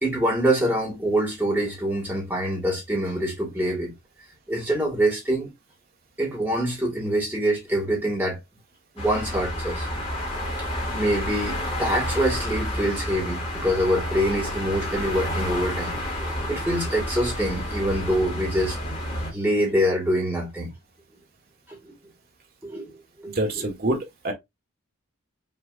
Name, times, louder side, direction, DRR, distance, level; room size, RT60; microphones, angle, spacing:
voice 1, 0.0-3.9 4.5-5.5 6.2-8.4 9.0-9.9 10.9-16.0 16.5-18.8 19.3-20.7 21.7-21.9 22.6-23.3 23.8-24.0, right 1 dB, 10° right, 2.0 m, -25 dB
sound 1, 9.0-19.3, left 1 dB, 25° left, 2.1 m, -30 dB
voice 2, 23.2-24.3, right 1 dB, 45° right, 1.5 m, -26 dB
5.8 x 3.3 x 2.5 m
head